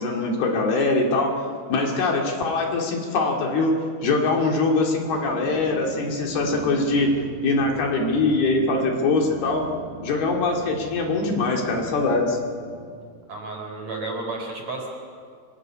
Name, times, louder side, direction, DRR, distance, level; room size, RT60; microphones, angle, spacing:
voice 1, 0.0-1.4 1.7-3.7 4.0-9.7 10.0-12.4, left 3 dB, 65° left, 1 dB, 4.2 m, -22 dB
sound 1, 4.5-12.9, right 3 dB, 75° right, 4.6 m, -40 dB
voice 2, 13.3-14.9, right 3 dB, 40° right, 2 dB, 5.3 m, -32 dB
25.5 x 19.5 x 9.7 m, 2.1 s
omnidirectional pair, 5.0 m